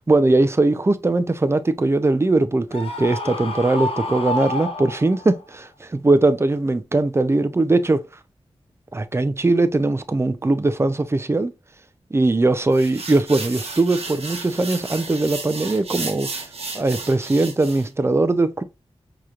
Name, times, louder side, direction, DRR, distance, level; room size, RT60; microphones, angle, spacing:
voice 1, 0.1-8.1 8.9-11.5 12.1-16.3 16.7-18.6, right 2 dB, 25° right, 0.5 m, -20 dB
Screaming, 2.7-5.4, left 2 dB, 60° left, 0.8 m, -29 dB
sound 1, 12.7-17.9, right 3 dB, 70° right, 0.9 m, -33 dB
4.7 x 3.0 x 2.4 m
cardioid pair, 45°, 11 cm